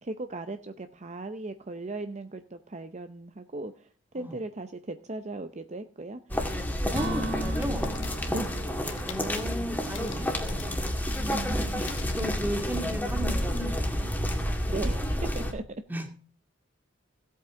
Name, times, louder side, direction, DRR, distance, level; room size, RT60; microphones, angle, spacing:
voice 1, 0.0-6.7 8.3-8.6 8.8-9.1 11.1-11.9 12.8-13.1 14.7-15.6, right 2 dB, 35° right, 8 dB, 0.7 m, -38 dB
sound 1, 6.3-15.5, equal, 10° left, 2.0 m, -30 dB
voice 2, 6.9-8.0 9.0-10.8 11.1-11.6 12.2-14.1 15.9-16.1, equal, 10° right, 4 dB, 2.2 m, -35 dB
Acoustic guitar / Strum, 6.9-10.6, equal, 85° right, 2.8 m, -37 dB
sound 2, 7.6-13.1, left 5 dB, 90° left, 1.6 m, -46 dB
17.0 x 8.5 x 3.7 m, 0.43 s
head